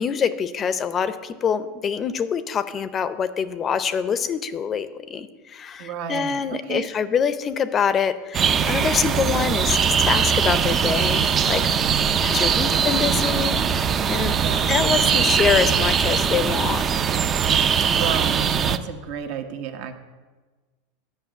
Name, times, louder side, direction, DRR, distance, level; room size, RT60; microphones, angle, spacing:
voice 1, 0.0-11.7 12.2-16.9, left 7 dB, 30° left, 13 dB, 0.6 m, -25 dB
voice 2, 5.8-6.9 12.6-13.5 14.3-15.2 17.9-20.0, right 8 dB, 60° right, 6 dB, 1.1 m, -33 dB
sound 1, 8.3-18.8, right 7 dB, 30° right, 0.5 m, -21 dB
10.0 x 5.5 x 7.8 m, 1.3 s
supercardioid pair, 120°, 0 cm